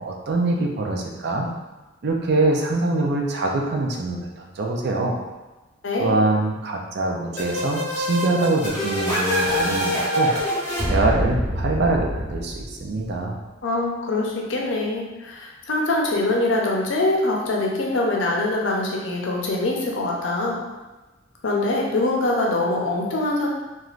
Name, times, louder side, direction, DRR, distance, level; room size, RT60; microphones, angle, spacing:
voice 1, 0.0-1.5 2.0-5.2 6.0-10.3 10.8-13.4, right 2 dB, 55° right, 1 dB, 0.4 m, -24 dB
sound 1, 7.4-13.0, equal, 10° left, 1.0 m, -25 dB
voice 2, 13.6-20.6 21.4-23.5, left 2 dB, 75° left, -1 dB, 0.6 m, -23 dB
3.1 x 2.4 x 2.4 m, 1.1 s
head